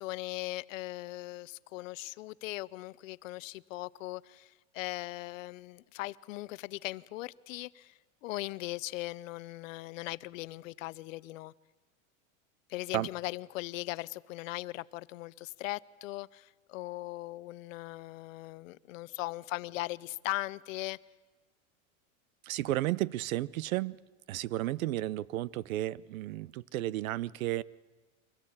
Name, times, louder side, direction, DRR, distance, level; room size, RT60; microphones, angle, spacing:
voice 1, 0.0-11.5 12.7-21.0, left 18 dB, 70° left, 0.7 m, -39 dB
voice 2, 22.4-24.0 24.3-27.6, right 15 dB, 85° right, 0.7 m, -33 dB
24.0 x 17.5 x 8.7 m
supercardioid pair, 160°, 40 cm